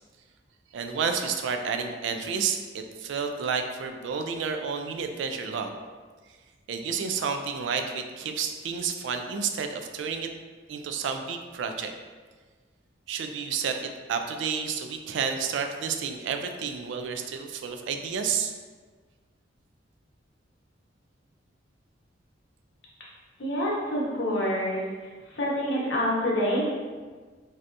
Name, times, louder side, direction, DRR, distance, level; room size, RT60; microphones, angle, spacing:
voice 1, 0.7-5.7 6.7-10.3 10.7-11.9 13.1-18.5, right 6 dB, 80° right, 6 dB, 0.3 m, -30 dB
voice 2, 23.4-24.8 25.3-26.6, equal, 75° left, -5 dB, 0.9 m, -27 dB
3.3 x 2.7 x 2.5 m, 1.4 s
head